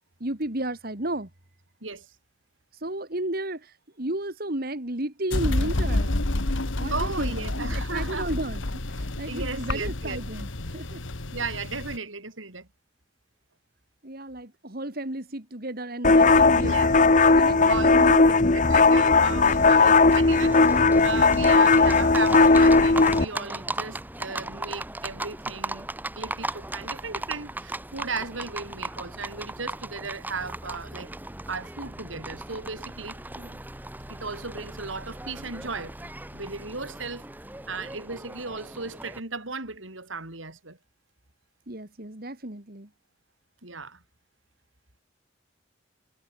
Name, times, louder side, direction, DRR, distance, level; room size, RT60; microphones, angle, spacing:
voice 1, 0.2-1.3 2.7-6.2 6.8-11.0 14.0-16.8 17.3-18.5 18.9-19.8 33.4-33.6 41.7-42.9, right 1 dB, 50° right, 2.6 m, -33 dB
sound 1, 5.3-12.0, left 2 dB, 80° left, 1.7 m, -29 dB
voice 2, 6.9-8.3 9.3-10.2 11.3-12.7 16.5-25.9 26.1-31.1 31.5-33.2 34.1-35.9 36.3-37.2 37.7-40.8 43.6-44.0, right 4 dB, 80° right, 5.0 m, -36 dB
sound 2, 16.0-23.3, left 3 dB, 40° left, 1.0 m, -17 dB
Livestock farm animals working animals, 19.3-39.2, right 2 dB, 10° right, 1.7 m, -37 dB
head